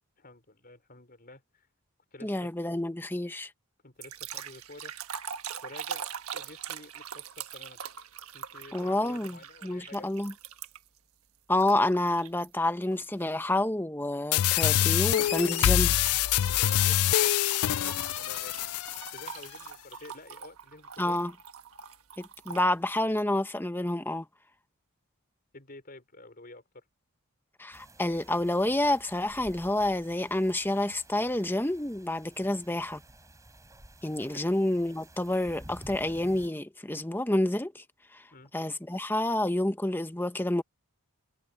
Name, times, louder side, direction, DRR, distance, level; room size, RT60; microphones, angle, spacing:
voice 1, 0.2-1.7 2.1-2.5 3.8-5.0 5.6-7.8 8.3-10.1 16.5-21.2 25.5-26.8 32.4-32.5 34.3-34.5 38.3-38.5, left 2 dB, 40° left, 5.2 m, -50 dB
voice 2, 2.2-3.5 8.7-10.3 11.5-16.0 21.0-21.3 22.2-24.3 27.6-33.0 34.0-37.8 38.1-38.2 38.5-40.6, left 1 dB, 10° left, 0.9 m, -29 dB
sound 1, 4.0-11.0 11.6-12.5 12.9-13.2 14.8-22.7, right 7 dB, 75° right, 1.4 m, -43 dB
sound 2, 14.3-19.3, left 12 dB, 80° left, 0.4 m, -25 dB
sound 3, 27.7-36.5, right 1 dB, 15° right, 4.9 m, -52 dB
head